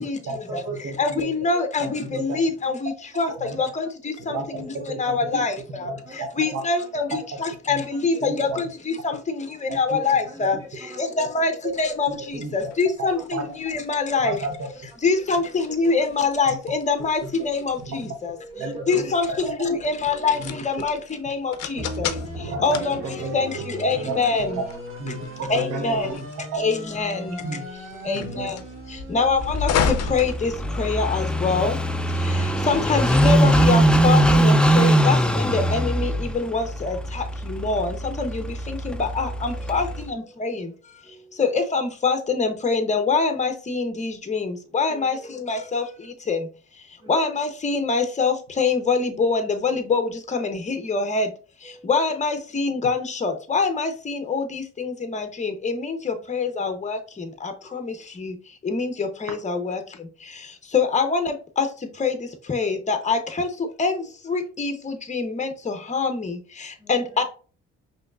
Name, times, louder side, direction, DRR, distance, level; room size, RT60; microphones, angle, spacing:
voice 1, 0.2-1.3 1.8-2.4 3.4-3.6 4.3-5.4 5.8-6.3 6.5-6.6 7.3-7.4 7.7-7.8 8.2-8.6 9.7-10.0 10.4-10.5 11.6-11.7 12.1-12.5 13.0-13.4 14.2-14.7 17.2-17.3 17.9-18.0 18.6-19.1 19.6-19.7 20.4-20.5 22.4-22.8 23.0-23.4 24.0-24.1 24.4-24.5 25.0-26.2 26.5-26.6 27.4-27.6 28.2-28.5, right 3 dB, 60° right, 3 dB, 0.9 m, -32 dB
voice 2, 1.0-3.3 3.6-4.7 5.0-5.5 5.8-5.9 6.4-8.7 9.0-10.6 11.0-11.5 11.8-12.1 12.5-14.4 15.0-18.3 18.9-22.1 22.6-23.0 23.3-23.5 23.8-24.6 25.5-26.1 26.6-27.3 28.1-28.5 29.1-30.5 30.8-31.7 32.7-40.6 41.4-45.2 45.5-45.8 46.3-46.4 47.1-51.3 51.9-57.0 57.4-57.8 58.2-58.3 58.6-59.8 60.7-61.7 62.0-62.1 62.5-63.5 63.8-64.0 64.3-66.3 66.9-67.2, left 4 dB, 25° left, 7 dB, 0.8 m, -24 dB
voice 3, 1.5-2.1 3.6-3.7 4.1-4.7 5.8-7.2 7.8-8.5 9.1-9.2 9.9-12.1 12.7-12.8 13.1-13.2 14.1-14.2 14.7-15.9 17.2-17.3 18.4-19.2 20.1-21.0 21.5-21.6 22.4-23.0 23.5-23.7 25.1-26.1 27.1-27.3 27.6-28.4 39.1-40.8 41.0-41.4 44.9-45.7 47.0-47.2 51.1-51.2 51.6-52.2 57.6-57.8 58.9-59.1 62.2-62.4 62.6-63.2 64.0-64.1 64.4-64.6 66.8-67.2, right 2 dB, 15° right, -3 dB, 1.9 m, -45 dB
sound 1, 11.8-31.2, left 7 dB, 55° left, 0.5 m, -34 dB
sound 2, 21.7-31.3, right 1 dB, 45° right, 1.3 m, -37 dB
Car passing by / Idling, 29.4-40.1, right 1 dB, 5° left, 0.3 m, -21 dB
5.0 x 3.2 x 2.4 m, 0.37 s
cardioid pair, 90°, 30 cm